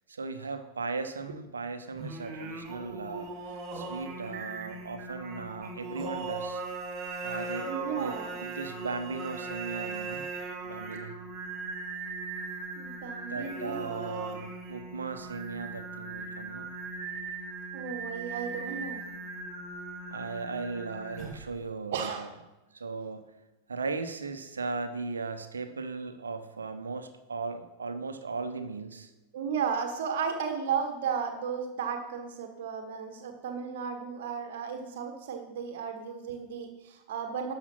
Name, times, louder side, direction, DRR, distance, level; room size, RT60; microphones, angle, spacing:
voice 1, 0.1-3.3 3.7-6.6 7.2-10.2 10.6-11.1 13.2-16.7 20.1-22.3 22.7-23.3 23.7-29.1, right 4 dB, 75° right, 9 dB, 0.9 m, -37 dB
Singing, 1.9-21.6, right 3 dB, 35° right, 2.7 m, -39 dB
voice 2, 7.6-8.4 12.7-14.1 17.7-19.0 21.9-22.3 29.3-37.5, right 6 dB, 55° right, 5 dB, 1.4 m, -34 dB
12.0 x 6.9 x 5.8 m, 1.0 s
figure-of-eight pair, 90°, 0 cm